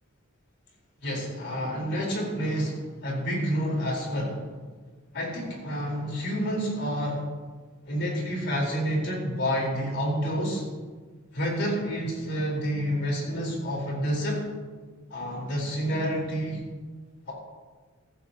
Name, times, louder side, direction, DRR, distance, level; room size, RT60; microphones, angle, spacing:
voice 1, 1.0-4.5 5.1-7.3 7.9-10.6 11.3-14.5 15.1-16.7 17.3-17.4, equal, 60° left, -2 dB, 4.1 m, -29 dB
16.0 x 14.5 x 2.9 m, 1.4 s
head